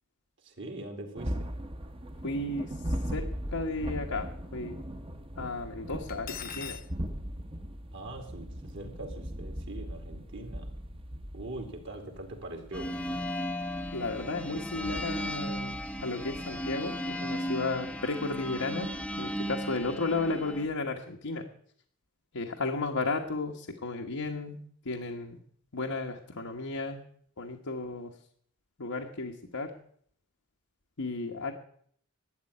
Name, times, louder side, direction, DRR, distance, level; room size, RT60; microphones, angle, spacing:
voice 1, 0.4-1.5 7.9-10.7 11.3-13.3, right 2 dB, 60° right, 4 dB, 2.6 m, -42 dB
sound 1, 1.2-20.7, equal, 25° right, 0.9 m, -40 dB
voice 2, 2.2-4.8 5.4-6.8 13.9-21.5 22.3-25.4 25.7-27.0 27.4-28.1 28.8-29.8 31.0-31.5, left 3 dB, 85° left, 0 dB, 1.3 m, -34 dB
Cutlery silverware, 6.1-6.9, left 9 dB, 40° left, 0.7 m, -40 dB
sound 2, 12.7-20.7, equal, 5° left, 0.6 m, -36 dB
12.5 x 8.4 x 9.8 m, 0.63 s
head